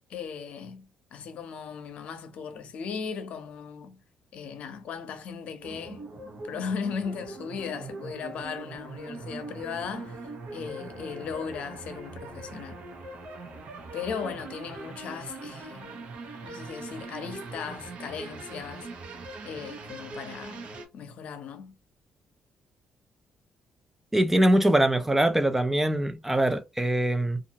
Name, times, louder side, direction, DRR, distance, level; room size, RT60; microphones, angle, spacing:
voice 1, 0.1-4.0 4.3-6.1 6.4-10.2 10.5-12.8 13.9-16.0 16.4-18.9 19.4-21.8, left 6 dB, 70° left, 0.7 m, -37 dB
sound 1, 5.6-20.8, right 3 dB, 65° right, 0.9 m, -41 dB
voice 2, 24.1-27.4, right 1 dB, 10° right, 0.5 m, -23 dB
2.7 x 2.4 x 2.8 m
cardioid pair, 85°, 2 cm